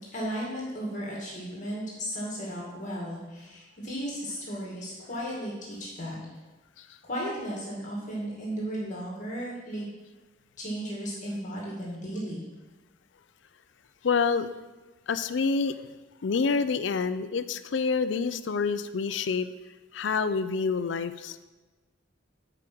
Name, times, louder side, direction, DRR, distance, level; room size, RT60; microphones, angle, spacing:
voice 1, 0.1-6.2 7.0-9.9 10.6-12.4, equal, 40° left, -4 dB, 2.2 m, -35 dB
voice 2, 14.0-14.5 15.1-15.8 16.2-19.5 19.9-21.4, left 5 dB, 70° left, 12 dB, 0.4 m, -27 dB
9.3 x 4.9 x 6.1 m, 1.2 s
head